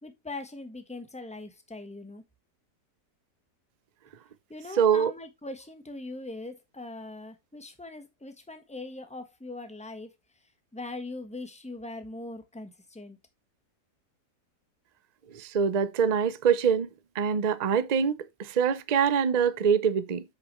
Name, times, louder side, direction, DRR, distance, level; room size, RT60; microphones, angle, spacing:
voice 1, 0.0-2.2 4.5-10.1 10.7-13.2, left 2 dB, 5° left, 1.1 m, -41 dB
voice 2, 4.8-5.1 15.3-16.9 17.1-20.2, right 7 dB, 65° right, 0.4 m, -24 dB
8.2 x 6.7 x 3.1 m
omnidirectional pair, 1.8 m